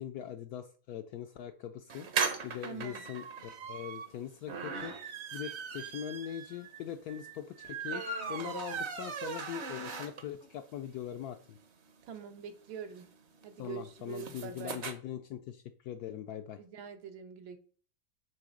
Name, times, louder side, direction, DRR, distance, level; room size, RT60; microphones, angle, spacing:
voice 1, 0.0-2.1 2.4-4.9 5.3-8.0 8.3-11.6 13.6-16.6, left 10 dB, 75° left, 7 dB, 0.9 m, -41 dB
sound 1, 1.9-10.5 10.9-11.0 11.2-11.3 11.5-14.9, right 5 dB, 50° right, 0.8 m, -39 dB
voice 2, 2.6-3.0 12.0-13.1 13.4-14.8 16.6-17.6, right 7 dB, 85° right, 7 dB, 1.8 m, -44 dB
7.6 x 3.2 x 6.2 m, 0.42 s
omnidirectional pair, 2.1 m